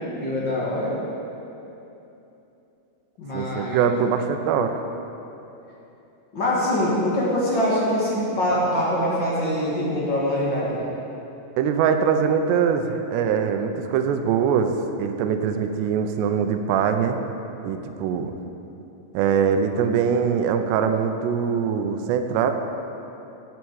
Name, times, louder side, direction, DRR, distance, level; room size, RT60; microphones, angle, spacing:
voice 1, 0.2-0.9 3.2-3.9 6.3-10.8, left 1 dB, 40° left, -6 dB, 1.7 m, -24 dB
voice 2, 3.3-4.8 11.6-14.7 15.0-17.2 17.6-18.3 19.1-22.5, right 7 dB, 85° right, 7 dB, 2.9 m, -22 dB
14.0 x 7.8 x 4.7 m, 2.9 s
omnidirectional pair, 4.8 m